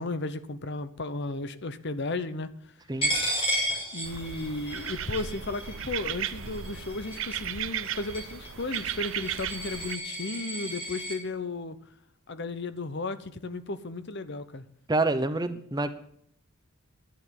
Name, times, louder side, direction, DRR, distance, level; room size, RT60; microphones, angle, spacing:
voice 1, 0.0-2.5 3.9-11.8 12.3-14.6, left 3 dB, 55° left, 0.9 m, -34 dB
Coin (dropping), 3.0-11.2, equal, 25° left, 6.7 m, -33 dB
sound 1, 4.0-10.0, right 9 dB, 65° right, 0.7 m, -36 dB
voice 2, 14.9-15.9, right 2 dB, 20° right, 0.8 m, -27 dB
11.5 x 9.7 x 6.9 m
head